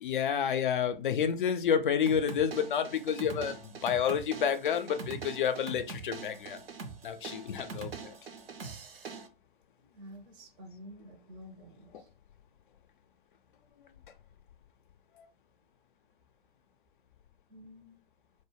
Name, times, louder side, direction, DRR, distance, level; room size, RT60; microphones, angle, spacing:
voice 1, 0.0-6.6 7.0-8.1, left 8 dB, 60° left, 0.4 m, -29 dB
sound 1, 2.1-9.3, right 4 dB, 75° right, 0.6 m, -43 dB
voice 2, 9.9-12.1 17.5-18.0, equal, 20° right, 0.5 m, -50 dB
2.1 x 2.0 x 3.1 m
figure-of-eight pair, 110°, 29 cm